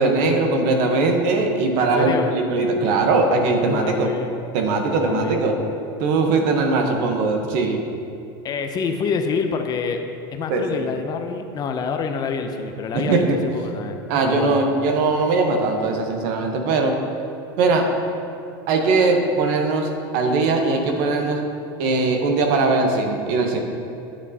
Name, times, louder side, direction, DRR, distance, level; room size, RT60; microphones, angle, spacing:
voice 1, 0.0-4.1 4.5-5.5 6.0-7.8 10.5-10.9 12.9-13.4 14.1-16.9 17.6-17.9 18.7-21.4 21.8-23.6, right 3 dB, 65° right, 3 dB, 1.0 m, -20 dB
voice 2, 1.8-2.3 3.6-4.3 5.0-5.4 8.4-10.0 10.3-14.6, left 5 dB, 35° left, 6 dB, 0.6 m, -27 dB
9.4 x 6.8 x 2.8 m, 2.6 s
supercardioid pair, 115°, 12 cm